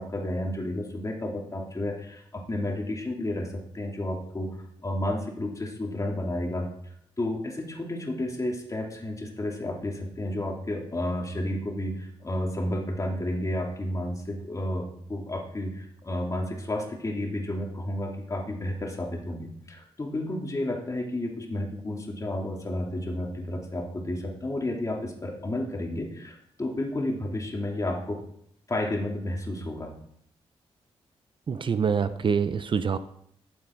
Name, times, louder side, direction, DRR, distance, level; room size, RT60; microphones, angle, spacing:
voice 1, 0.0-4.5 4.8-6.7 7.2-28.2 28.7-29.9, left 1 dB, 30° left, 0 dB, 2.9 m, -31 dB
voice 2, 31.5-33.0, right 6 dB, 50° right, 13 dB, 0.6 m, -25 dB
12.0 x 7.9 x 4.6 m, 0.70 s
cardioid pair, 65°, 11 cm